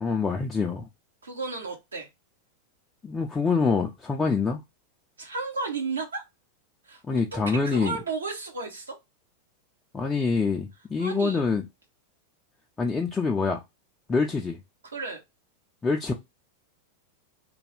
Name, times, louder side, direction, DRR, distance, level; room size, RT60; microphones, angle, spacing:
voice 1, 0.0-0.9 3.0-4.6 7.1-8.0 9.9-11.6 12.8-13.6 14.1-14.6 15.8-16.1, left 4 dB, 15° left, 0.4 m, -25 dB
voice 2, 1.2-2.1 5.2-6.2 6.8-9.0 11.0-11.4 14.9-15.2, right 4 dB, 75° right, 1.1 m, -33 dB
2.6 x 2.3 x 3.4 m
figure-of-eight pair, 90°, 0 cm